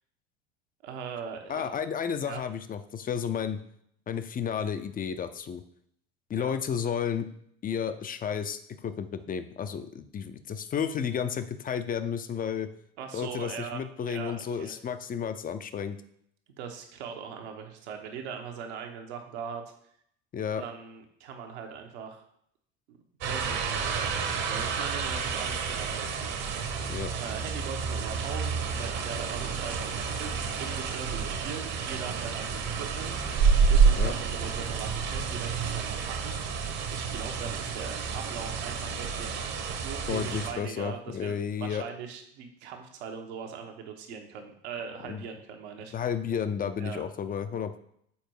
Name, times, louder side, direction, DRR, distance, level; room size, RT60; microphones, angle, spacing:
voice 1, 0.8-1.7 2.2-2.4 6.3-6.5 13.0-14.7 16.6-19.7 20.6-22.2 22.9-23.0 23.2-26.5 27.2-30.3 30.6-33.2 33.7-36.6 36.9-45.9 46.8-47.0, right 6 dB, 65° right, 4 dB, 1.3 m, -40 dB
voice 2, 1.5-3.6 4.1-5.6 6.3-7.3 7.6-12.7 13.1-16.0 20.3-20.6 26.9-27.1 33.9-34.1 40.1-41.8 45.0-45.2 45.9-47.8, left 7 dB, 25° left, 10 dB, 0.6 m, -32 dB
sound 1, 23.2-40.5, right 5 dB, 50° right, 1.3 m, -29 dB
7.1 x 4.5 x 4.6 m, 0.70 s
hypercardioid pair, 70°, 35 cm